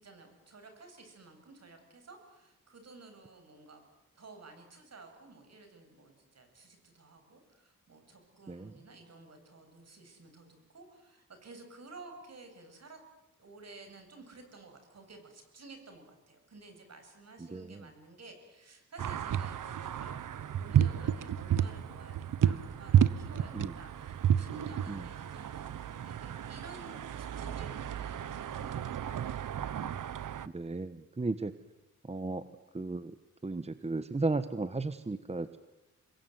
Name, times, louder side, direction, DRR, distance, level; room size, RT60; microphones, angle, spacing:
voice 1, 0.0-3.8 4.1-13.0 13.4-29.2, right 3 dB, 55° right, 6 dB, 7.9 m, -53 dB
voice 2, 8.5-8.8 17.5-17.9 23.5-23.7 24.9-25.0 30.5-31.5 32.0-32.4 32.7-33.1 33.4-35.6, right 3 dB, 20° right, 12 dB, 1.2 m, -35 dB
sound 1, 19.0-30.5, right 9 dB, 85° right, 1.2 m, -31 dB
27.5 x 22.0 x 9.5 m, 0.98 s
wide cardioid pair, 105°, 31 cm